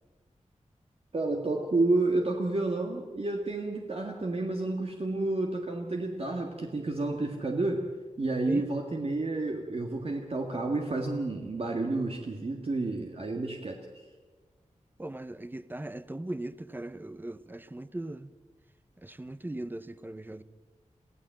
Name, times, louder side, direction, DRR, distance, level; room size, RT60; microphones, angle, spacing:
voice 1, 1.1-7.8 8.2-14.0, right 2 dB, 50° right, 1.8 m, -30 dB
voice 2, 15.0-18.3 19.0-20.4, right 1 dB, 15° right, 0.7 m, -39 dB
23.0 x 15.5 x 7.7 m
wide cardioid pair, 105°, 13 cm